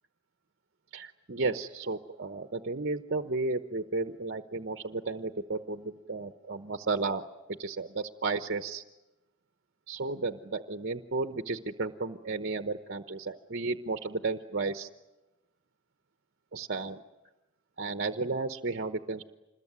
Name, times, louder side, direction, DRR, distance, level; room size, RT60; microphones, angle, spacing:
voice 1, 0.9-7.2 7.6-8.8 9.9-14.9 16.5-17.0 17.8-19.2, right 3 dB, 55° right, 9 dB, 1.0 m, -33 dB
27.0 x 21.5 x 9.7 m, 1.0 s
head